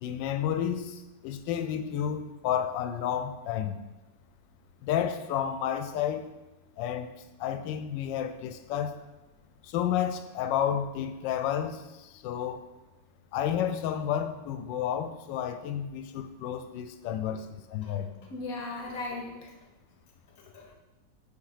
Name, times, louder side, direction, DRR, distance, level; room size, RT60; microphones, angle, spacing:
voice 1, 0.0-3.8 4.8-6.3 6.8-7.1 7.4-9.0 9.6-12.6 13.3-18.1, left 9 dB, 85° left, 10 dB, 1.2 m, -31 dB
voice 2, 17.8-19.5 20.4-20.7, left 2 dB, 60° left, 1 dB, 1.3 m, -39 dB
5.8 x 4.4 x 4.9 m, 1.1 s
omnidirectional pair, 1.9 m